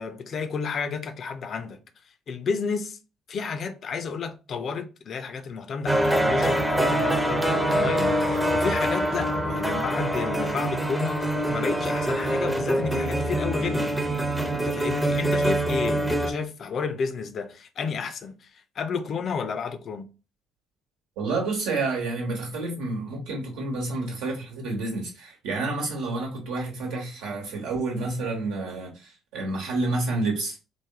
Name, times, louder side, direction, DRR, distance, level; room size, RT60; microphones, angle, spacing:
voice 1, 0.0-1.8 2.3-3.0 3.3-14.3 14.5-20.1, left 5 dB, 50° left, 0.4 m, -32 dB
sound 1, 5.9-16.3, right 1 dB, 10° right, 0.7 m, -25 dB
voice 2, 21.2-30.6, right 3 dB, 70° right, 1.2 m, -29 dB
3.3 x 2.1 x 3.5 m
hypercardioid pair, 50°, 0 cm